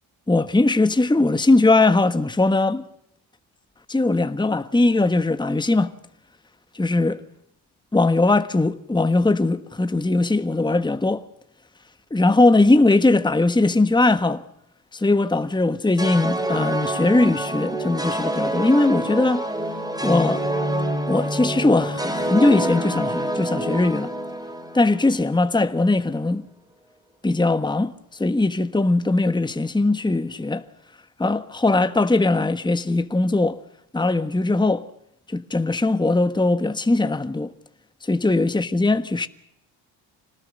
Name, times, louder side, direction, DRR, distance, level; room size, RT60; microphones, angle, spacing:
voice 1, 0.3-2.8 3.9-5.9 6.7-7.2 7.9-11.2 12.1-14.4 14.9-19.5 20.0-20.4 21.1-24.1 24.7-26.5 27.2-30.6 31.2-33.6 33.9-34.9 35.3-37.5 38.0-39.3, left 2 dB, 10° left, 1.3 m, -20 dB
sound 1, 16.0-25.3, right 1 dB, 10° right, 4.4 m, -27 dB
26.5 x 19.0 x 6.4 m
supercardioid pair, 60°, 49 cm